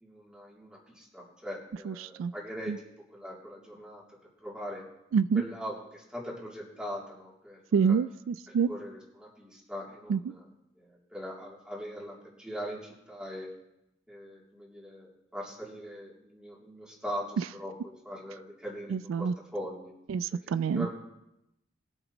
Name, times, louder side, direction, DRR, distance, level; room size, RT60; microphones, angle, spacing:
voice 1, 0.0-2.7 3.1-4.0 4.4-4.9 5.3-8.0 8.5-10.5 10.8-13.5 14.1-19.9 20.7-20.9, equal, 5° right, -4 dB, 2.8 m, -41 dB
voice 2, 1.9-2.3 2.7-2.8 5.1-5.4 7.7-8.7 10.1-10.2 17.4-17.5 18.9-19.3 20.1-20.9, right 6 dB, 85° right, 16 dB, 0.3 m, -27 dB
21.0 x 8.0 x 3.0 m, 0.85 s
head